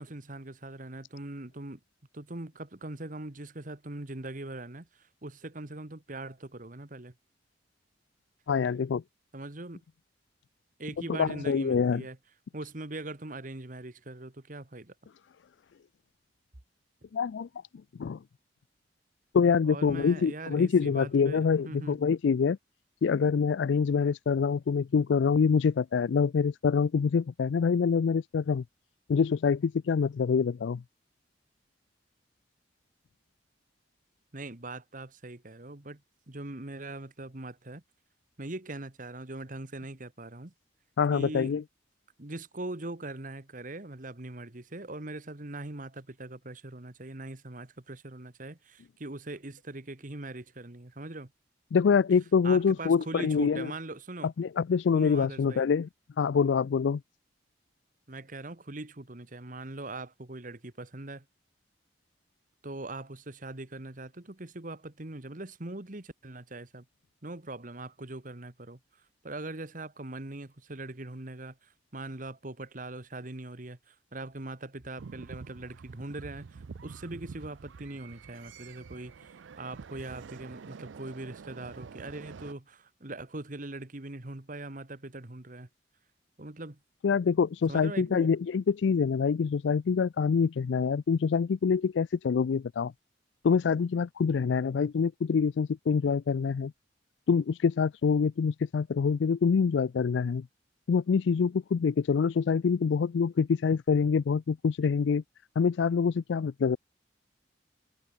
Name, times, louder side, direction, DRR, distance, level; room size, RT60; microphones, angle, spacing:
voice 1, 0.0-1.8 2.1-7.1 9.3-9.8 10.8-12.2 12.5-14.9 19.6-22.0 34.3-36.0 36.3-37.8 38.4-40.5 41.1-41.5 42.2-51.3 52.4-54.3 54.9-55.7 58.1-61.2 62.6-66.8 67.2-68.8 69.2-85.7 86.4-86.8 87.7-88.3, right 2 dB, 45° right, 1.5 m, -41 dB
voice 2, 8.5-9.0 11.1-12.0 17.1-17.5 18.0-18.2 19.3-22.6 23.0-28.6 29.1-30.8 41.0-41.6 51.7-53.7 54.2-55.9 56.2-57.0 87.0-92.9 93.4-96.7 97.3-100.5 100.9-105.2 105.6-106.8, left 6 dB, 70° left, 0.4 m, -25 dB
sound 1, 75.0-82.5, right 5 dB, 85° right, 0.5 m, -47 dB
head